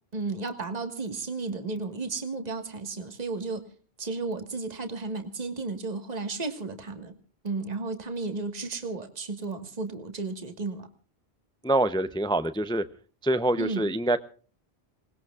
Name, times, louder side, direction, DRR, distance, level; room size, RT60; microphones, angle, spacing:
voice 1, 0.1-3.6 4.0-7.1 7.4-10.9 13.6-13.9, right 3 dB, 40° right, 7 dB, 1.7 m, -33 dB
voice 2, 11.6-12.8 13.2-14.2, right 1 dB, 5° left, 12 dB, 0.5 m, -25 dB
27.0 x 19.5 x 2.4 m, 0.39 s
omnidirectional pair, 1.1 m